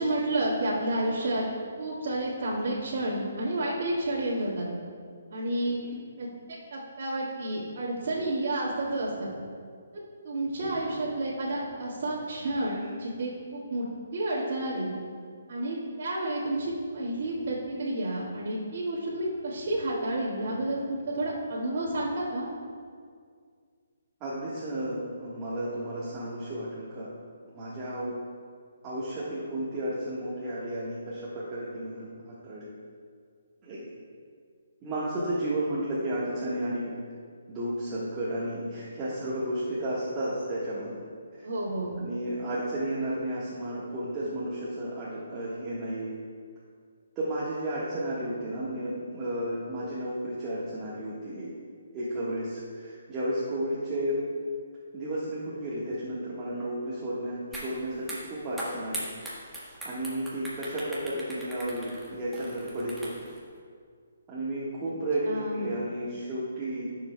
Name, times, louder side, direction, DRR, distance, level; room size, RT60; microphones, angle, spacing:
voice 1, 0.0-1.4 1.8-4.7 5.3-5.8 6.2-6.3 6.7-9.3 10.2-13.9 14.1-14.9 15.5-22.5 41.4-41.9 65.3-65.7, right 1 dB, 55° right, -12 dB, 2.0 m, -30 dB
voice 2, 10.6-11.0 24.2-27.1 27.5-28.1 28.8-32.7 33.6-33.9 34.8-36.9 37.5-40.9 42.0-46.1 47.1-51.5 51.9-54.2 54.9-59.1 59.8-63.2 64.3-66.9, right 1 dB, 20° right, -9 dB, 1.5 m, -33 dB
sound 1, 57.5-57.7 58.0-63.4, right 1 dB, ahead, 1.4 m, -39 dB
14.0 x 6.9 x 2.3 m, 2.1 s
hypercardioid pair, 155°, 0 cm